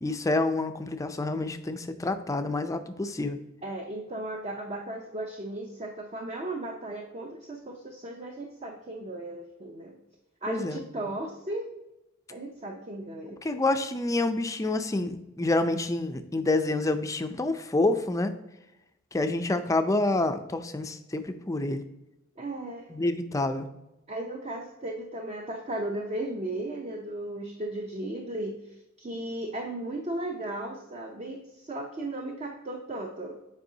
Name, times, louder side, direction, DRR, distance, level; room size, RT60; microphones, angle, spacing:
voice 1, 0.0-3.4 10.5-10.8 13.4-18.3 19.1-21.8 22.9-23.7, left 2 dB, 15° left, 8 dB, 0.4 m, -28 dB
voice 2, 3.6-10.0 10.4-11.7 12.3-13.4 22.4-23.0 24.1-33.3, right 1 dB, 30° right, 2 dB, 0.6 m, -36 dB
7.9 x 4.7 x 2.7 m, 0.94 s
head